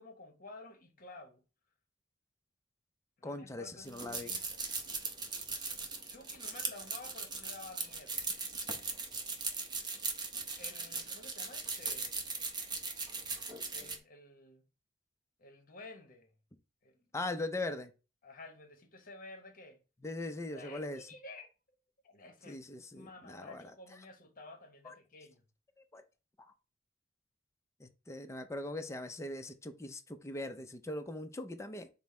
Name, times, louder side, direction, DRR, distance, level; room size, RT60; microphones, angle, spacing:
voice 1, 0.0-1.4 3.2-4.7 6.1-8.3 10.6-12.3 13.7-14.6 15.4-16.3 16.8-17.0 18.2-19.8 20.5-21.8 22.0-22.6 22.9-25.4, left 3 dB, 45° left, 0.9 m, -52 dB
voice 2, 3.2-4.3 17.1-17.9 20.0-21.1 22.5-23.7 24.8-24.9 25.9-26.0 27.8-31.9, left 2 dB, 15° left, 0.4 m, -40 dB
sound 1, 3.8-14.0, right 4 dB, 25° right, 0.7 m, -39 dB
5.4 x 2.0 x 4.2 m
head